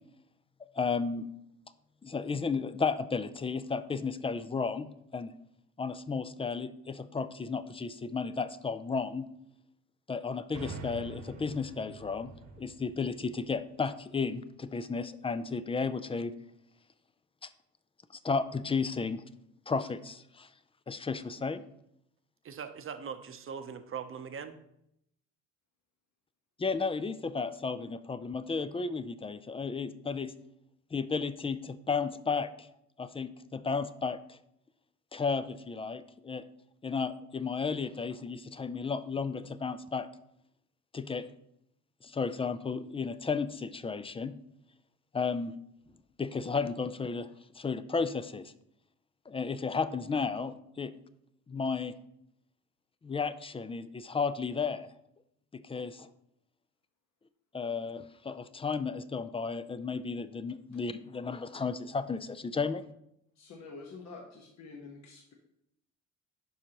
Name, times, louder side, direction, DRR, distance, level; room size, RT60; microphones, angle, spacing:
voice 1, 0.7-1.3 2.0-4.9 5.1-5.3 5.8-9.3 10.1-12.3 12.6-16.3 17.4-17.5 18.2-19.2 19.7-20.5 20.9-21.6 26.6-30.3 30.9-32.7 33.0-34.4 35.1-36.4 36.8-40.1 40.9-41.3 42.0-44.3 45.1-45.5 46.2-47.3 47.5-48.5 49.3-50.9 51.5-51.9 53.0-54.9 55.5-56.1 57.5-62.8, left 5 dB, 20° left, 14 dB, 0.4 m, -33 dB
sound 1, 10.5-14.2, right 4 dB, 75° right, 1.3 m, -46 dB
voice 2, 22.4-24.6, right 6 dB, 45° right, 9 dB, 0.8 m, -41 dB
voice 3, 63.4-65.3, left 4 dB, 65° left, 0 dB, 1.2 m, -47 dB
11.0 x 5.1 x 2.9 m, 0.79 s
cardioid pair, 90°, 30 cm